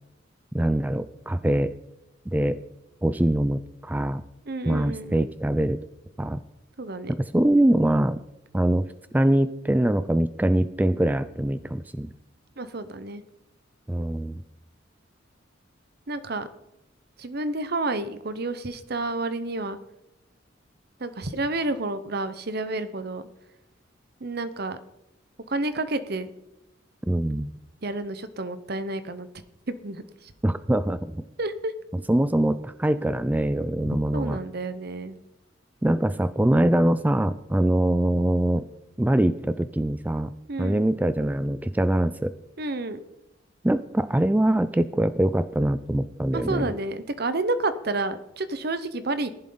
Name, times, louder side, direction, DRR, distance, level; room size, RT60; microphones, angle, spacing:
voice 1, 0.5-1.7 2.3-2.6 3.0-4.2 4.7-5.8 6.2-6.4 7.1-8.2 8.5-12.1 13.9-14.4 27.1-27.5 30.4-31.2 32.1-34.4 35.8-38.7 39.0-40.3 40.6-42.3 43.6-46.7, right 1 dB, 10° right, 13 dB, 0.3 m, -23 dB
voice 2, 4.5-5.3 6.8-7.1 12.6-13.2 16.1-16.5 17.2-19.8 21.0-23.2 24.2-24.8 25.5-26.3 27.8-29.3 29.7-30.3 31.4-31.7 33.8-35.1 40.5-40.8 42.6-43.0 46.3-49.3, right 2 dB, 55° right, 12 dB, 0.9 m, -30 dB
15.0 x 11.0 x 3.9 m, 0.90 s
head